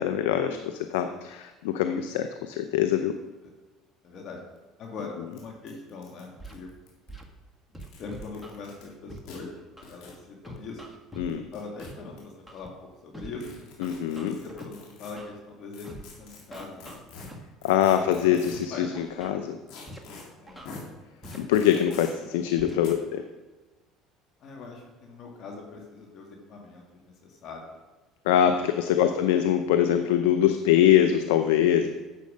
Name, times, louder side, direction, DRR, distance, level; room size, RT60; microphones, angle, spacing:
voice 1, 0.0-3.2 11.2-11.5 13.8-14.4 17.6-19.6 21.3-23.2 28.3-31.9, left 10 dB, 90° left, 8 dB, 0.6 m, -23 dB
voice 2, 4.0-4.4 4.8-6.7 8.0-9.6 9.9-11.0 11.5-13.6 14.3-17.0 17.9-18.9 19.2-19.5 20.4-20.6 21.7-21.8 22.3-22.4 24.4-27.7 28.9-29.1, left 4 dB, 55° left, 0 dB, 2.2 m, -42 dB
sound 1, 4.6-4.7 4.8-4.9 5.3-5.4 5.7-7.1 7.7-8.8 9.2-9.4 9.8-10.2 11.3-12.2 13.4-15.1 15.7-18.7 19.7-20.2 20.6-20.8 21.2-22.1 22.8-22.9, left 4 dB, 75° left, 3.4 m, -46 dB
Scratching (performance technique), 6.4-6.6 7.1-7.2 7.7-8.6 9.1-9.2 9.8-9.9 10.4-11.3 11.8-11.9 12.5-12.7 13.1-13.3 13.8-14.7 15.2-15.3 15.8-16.0 16.5-17.4 17.9-18.0 18.5-18.7 18.9-19.3 19.9-20.0 20.5-20.7 21.2-21.4 21.9-22.0 22.6-22.7, right 1 dB, ahead, 1.7 m, -43 dB
11.0 x 7.5 x 5.1 m, 1.2 s
supercardioid pair, 95°, 0 cm